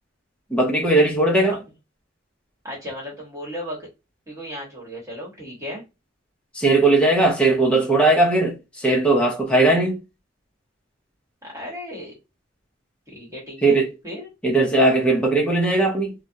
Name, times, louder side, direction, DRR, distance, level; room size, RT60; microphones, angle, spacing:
voice 1, 0.5-1.6 6.6-10.0 13.6-13.9 14.4-16.1, right 2 dB, 5° left, 0.6 m, -18 dB
voice 2, 2.6-3.9 4.3-5.8 11.4-12.2 13.1-14.3, equal, 15° right, 1.1 m, -35 dB
2.3 x 2.1 x 2.7 m
head